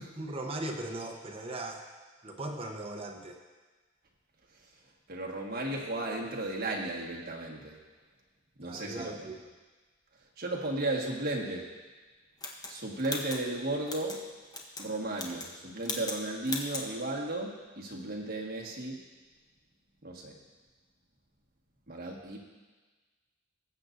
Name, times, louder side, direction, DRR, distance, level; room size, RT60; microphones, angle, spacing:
voice 1, 0.2-1.9 2.2-3.4 8.6-9.3, right 2 dB, 30° right, 2 dB, 1.0 m, -38 dB
voice 2, 5.1-7.8 8.6-9.3 10.4-11.7 12.7-14.2 14.8-19.0 20.0-20.3 21.9-22.4, right 2 dB, 50° right, -2 dB, 1.6 m, -35 dB
sound 1, 12.4-14.2 14.5-14.9 15.1-15.5 15.8-16.2 16.4-16.9, left 2 dB, 20° left, 1.0 m, -38 dB
19.5 x 8.0 x 2.6 m, 1.3 s
head